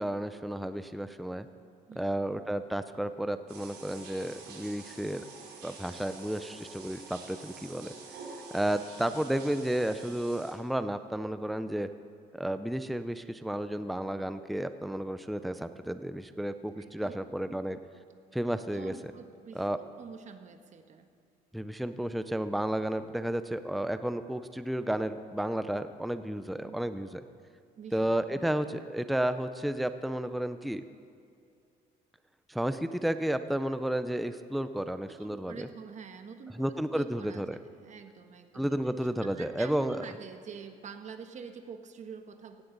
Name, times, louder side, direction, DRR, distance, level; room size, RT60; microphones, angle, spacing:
voice 1, 0.0-1.5 2.0-5.2 5.6-7.9 8.5-11.9 12.3-17.8 18.3-18.9 19.5-19.8 21.5-27.2 27.9-30.8 32.5-35.7 36.6-37.6 38.5-40.0, right 1 dB, ahead, 10 dB, 0.5 m, -32 dB
voice 2, 1.9-2.2 16.8-17.2 17.5-17.6 18.4-21.1 26.6-26.8 27.8-28.5 28.8-28.9 35.1-37.4 37.8-38.7 39.0-42.6, right 6 dB, 45° right, 7 dB, 1.3 m, -47 dB
sound 1, 3.5-10.5, right 4 dB, 75° right, 4.0 m, -47 dB
17.0 x 17.0 x 4.0 m, 2.4 s
cardioid pair, 110°, 17 cm